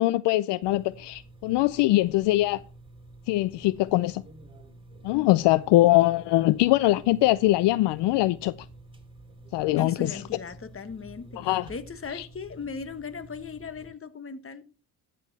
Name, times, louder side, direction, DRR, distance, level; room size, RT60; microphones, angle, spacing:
voice 1, 0.0-2.6 3.3-4.2 5.0-8.5 9.5-10.2 11.4-11.7 12.1-12.3, left 17 dB, 70° left, 0.5 m, -22 dB
sound 1, 0.6-13.9, right 2 dB, 10° right, 2.6 m, -49 dB
voice 2, 9.8-14.7, left 5 dB, 30° left, 1.4 m, -38 dB
13.0 x 7.0 x 4.1 m
supercardioid pair, 70°, 44 cm